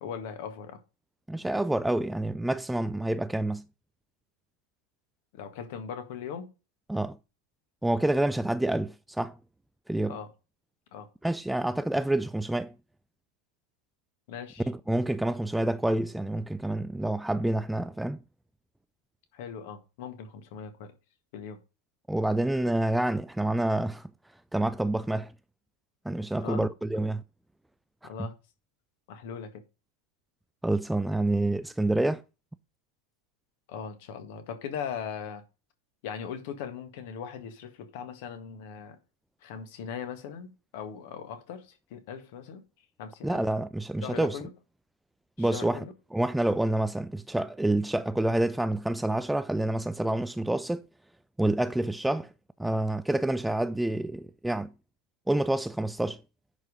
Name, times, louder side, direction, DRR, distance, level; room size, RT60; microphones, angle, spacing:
voice 1, 0.0-0.8 5.3-6.5 10.0-10.3 10.9-11.1 14.3-14.7 19.3-20.9 21.3-21.6 26.4-26.7 28.0-28.3 29.1-29.6 33.7-35.4 36.0-39.0 39.4-42.6 43.0-43.4 44.0-44.5 45.4-45.9, left 7 dB, 50° left, 1.7 m, -39 dB
voice 2, 1.3-3.6 6.9-7.2 7.8-9.4 9.9-10.2 11.2-12.7 14.7-18.2 22.1-24.0 24.5-25.3 26.1-27.2 30.6-32.2 43.2-44.4 45.4-45.8 46.1-50.8 51.4-52.3 52.6-54.7 55.3-56.2, right 1 dB, 5° right, 0.4 m, -28 dB
10.0 x 4.8 x 5.3 m
figure-of-eight pair, 90°, 0 cm